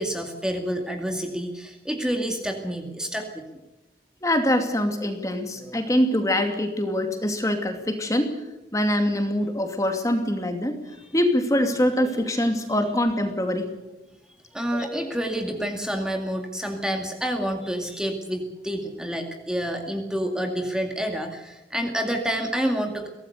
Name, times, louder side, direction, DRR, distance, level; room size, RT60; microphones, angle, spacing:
voice 1, 0.0-3.6 10.9-11.1 14.5-23.1, equal, 5° right, 3 dB, 2.2 m, -28 dB
voice 2, 4.2-8.4 8.7-10.8 11.1-13.7 14.7-15.0, left 1 dB, 20° left, 6 dB, 2.5 m, -24 dB
23.5 x 17.5 x 6.7 m, 1.1 s
head